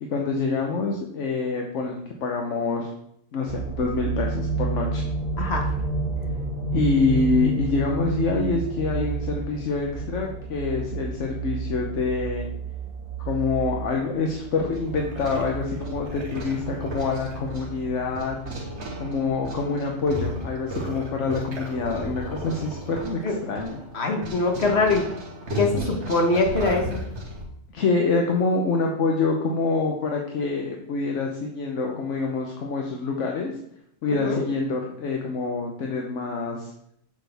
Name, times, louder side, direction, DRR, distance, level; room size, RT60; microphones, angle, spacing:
voice 1, 0.0-2.9 3.3-5.0 6.7-12.5 13.2-18.4 19.0-23.8 27.7-33.5 34.0-36.7, left 4 dB, 85° left, 1 dB, 1.2 m, -26 dB
sound 1, 3.5-21.3 21.7-21.8, right 4 dB, 50° right, 1.5 m, -31 dB
sound 2, 14.3-27.4, right 1 dB, 75° right, 1.6 m, -35 dB
voice 2, 23.9-25.1 25.5-27.0 34.2-34.4, left 3 dB, 65° left, 2 dB, 1.5 m, -23 dB
8.1 x 6.3 x 3.4 m, 0.75 s
omnidirectional pair, 1.2 m